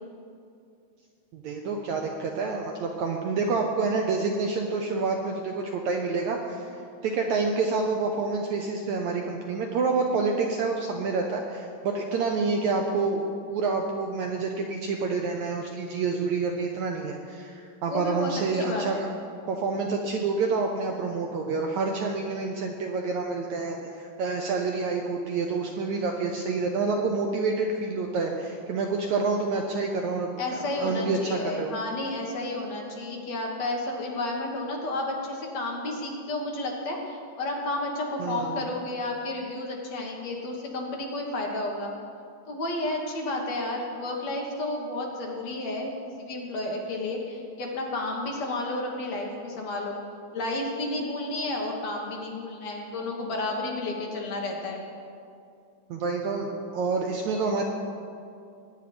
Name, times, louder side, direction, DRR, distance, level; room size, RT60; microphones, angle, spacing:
voice 1, 1.3-13.2 13.5-19.1 19.5-31.7 38.2-38.6 55.9-57.6, right 4 dB, 70° right, 2 dB, 1.8 m, -28 dB
voice 2, 17.9-18.3 18.6-19.1 30.4-41.9 42.5-45.9 46.2-50.0 50.3-54.8, left 2 dB, 55° left, -1 dB, 2.4 m, -31 dB
21.0 x 9.4 x 5.1 m, 2.4 s
omnidirectional pair, 4.1 m